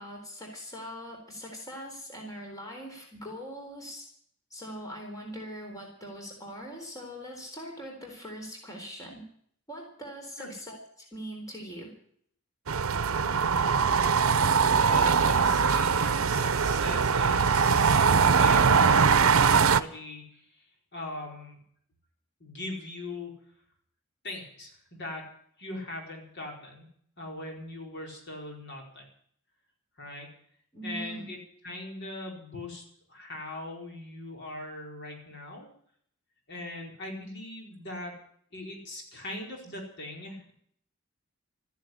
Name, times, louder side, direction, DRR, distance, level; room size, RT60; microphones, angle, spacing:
voice 1, 0.0-4.1 4.5-9.2 9.7-11.9 30.7-31.3, equal, 15° left, 0 dB, 3.9 m, -41 dB
sound 1, 12.7-19.8, right 6 dB, 75° right, 0.7 m, -22 dB
voice 2, 13.1-13.7 14.8-20.7 20.9-21.6 22.4-23.3 24.2-25.3 25.6-26.9 27.2-29.1 30.0-30.3 30.8-31.4 31.6-32.8 33.1-35.7 36.5-38.1 38.5-40.5, left 2 dB, 55° left, 0 dB, 4.9 m, -40 dB
14.0 x 10.5 x 9.5 m, 0.63 s
head